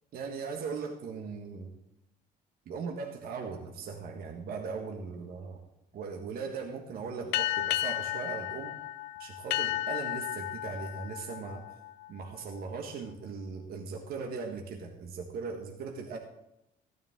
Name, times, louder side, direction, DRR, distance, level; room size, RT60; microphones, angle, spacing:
voice 1, 0.1-1.7 2.7-5.6 5.9-8.8 9.2-11.6 12.1-16.2, right 5 dB, 65° right, 2 dB, 1.7 m, -39 dB
sound 1, 7.3-12.4, left 14 dB, 80° left, 0.5 m, -33 dB
15.5 x 10.5 x 3.7 m, 0.86 s
cardioid pair, 110°, 17 cm